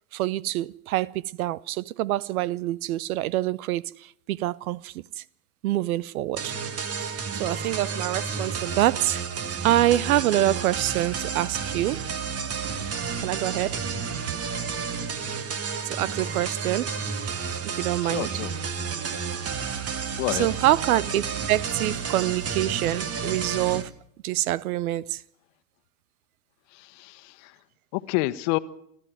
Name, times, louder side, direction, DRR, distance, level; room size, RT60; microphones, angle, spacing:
voice 1, 0.1-5.2 5.6-6.6 7.4-9.2 9.6-12.0 13.2-13.8 15.8-16.9 17.6-18.4 20.1-23.9 24.2-25.2, right 15 dB, 80° right, 0.8 m, -26 dB
sound 1, 6.4-23.8, right 6 dB, 35° right, 1.9 m, -31 dB
voice 2, 18.0-18.5 20.2-20.5 26.7-27.5 27.9-28.6, left 20 dB, 60° left, 1.3 m, -29 dB
27.0 x 12.0 x 9.3 m
hypercardioid pair, 95°, 42 cm